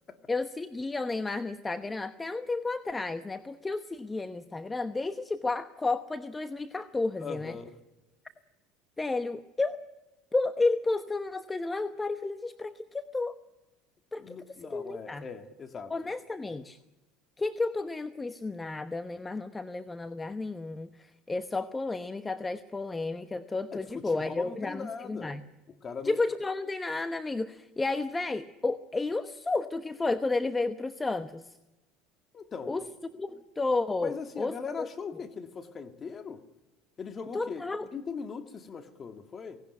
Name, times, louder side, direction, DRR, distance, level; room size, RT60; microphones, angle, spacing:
voice 1, 0.3-7.6 9.0-9.8 10.3-13.3 14.1-14.4 14.7-15.2 15.9-16.8 17.4-25.4 26.0-31.5 32.7-32.8 33.2-34.9 37.3-37.9, left 3 dB, 15° left, 1.0 m, -32 dB
voice 2, 7.2-7.8 14.2-15.9 23.7-25.4 25.8-26.2 32.3-32.8 34.0-36.4 37.0-37.6 37.9-39.6, left 5 dB, 35° left, 2.3 m, -40 dB
18.5 x 17.5 x 9.3 m
hypercardioid pair, 85°, 0 cm